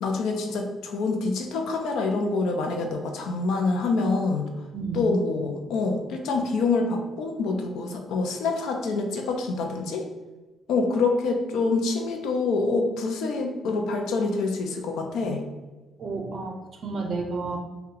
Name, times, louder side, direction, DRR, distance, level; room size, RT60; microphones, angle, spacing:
voice 1, 0.0-4.5 4.9-10.1 10.7-15.4, left 3 dB, 85° left, 4 dB, 0.4 m, -26 dB
voice 2, 4.7-5.1 16.0-17.6, right 3 dB, 50° right, 2 dB, 0.5 m, -31 dB
2.7 x 2.2 x 3.7 m, 1.2 s
cardioid pair, 90°, 0 cm